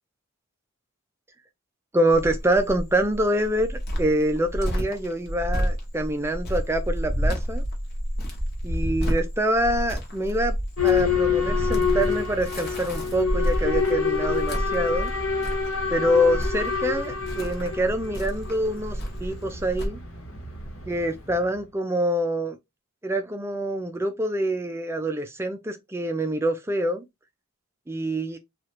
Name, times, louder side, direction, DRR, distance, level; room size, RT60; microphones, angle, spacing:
voice 1, 1.9-7.6 8.6-10.6 10.8-15.1 15.9-20.0 20.9-22.6 23.0-27.0 27.9-28.4, right 1 dB, 10° right, 0.4 m, -25 dB
Cricket, 2.1-19.9, equal, 50° left, 0.9 m, -30 dB
Boat Water vehicle / Alarm, 10.8-21.4, left 5 dB, 75° left, 1.1 m, -27 dB
3.1 x 2.4 x 3.0 m
head